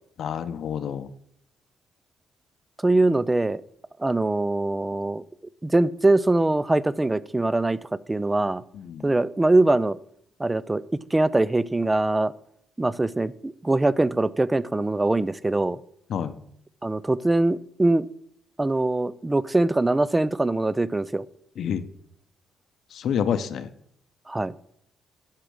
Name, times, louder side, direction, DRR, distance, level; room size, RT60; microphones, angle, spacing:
voice 1, 0.2-1.1 8.7-9.1 16.1-16.3 21.6-21.8 22.9-23.7, left 8 dB, 65° left, 11 dB, 0.7 m, -28 dB
voice 2, 2.8-3.6 4.0-5.2 5.6-7.8 8.1-8.6 9.0-10.0 10.4-10.8 11.1-12.3 12.8-15.8 16.8-18.1 18.6-21.2 24.3-24.5, right 2 dB, 15° right, 19 dB, 0.4 m, -22 dB
10.5 x 6.0 x 6.3 m, 0.70 s
cardioid pair, 90°, 0 cm